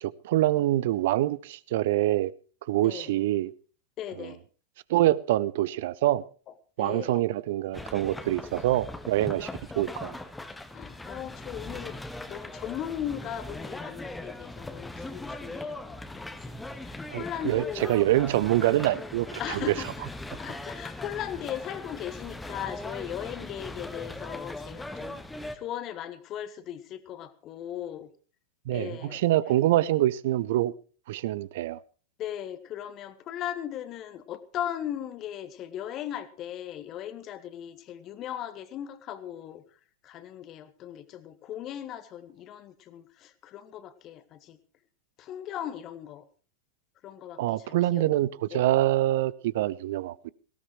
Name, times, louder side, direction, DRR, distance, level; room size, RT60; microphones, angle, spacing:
voice 1, 0.0-2.3 2.7-3.5 4.2-4.3 4.9-6.2 6.8-9.5 9.7-10.2 17.1-19.7 28.7-30.7 31.1-31.8 47.4-50.3, right 15 dB, 55° right, 0.7 m, -25 dB
voice 2, 4.0-4.4 6.5-7.3 10.7-12.0 12.3-18.0 19.4-20.1 20.4-25.2 25.5-28.1 28.7-29.2 32.2-44.6 45.2-46.2 47.0-48.1 48.5-48.6, left 10 dB, 35° left, 1.5 m, -38 dB
sound 1, 7.7-25.6, left 2 dB, 5° left, 1.4 m, -40 dB
18.5 x 17.0 x 3.1 m
figure-of-eight pair, 90°, 0 cm